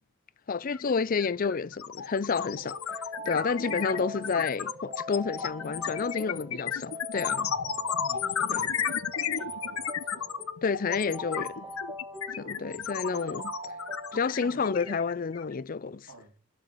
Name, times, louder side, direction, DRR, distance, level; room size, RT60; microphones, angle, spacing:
voice 1, 0.5-2.8 3.3-7.5 8.5-8.7 10.6-11.6 12.4-13.5 14.1-16.1, left 5 dB, 40° left, 0.5 m, -30 dB
sound 1, 0.7-0.9 1.2-15.5, left 8 dB, 75° left, 0.8 m, -33 dB
sound 2, 2.4-14.9, right 1 dB, 20° right, 1.5 m, -42 dB
voice 2, 7.5-10.4 12.4-13.2 14.3-14.7 16.1-16.3, right 2 dB, 80° right, 3.8 m, -52 dB
11.5 x 5.2 x 8.7 m
head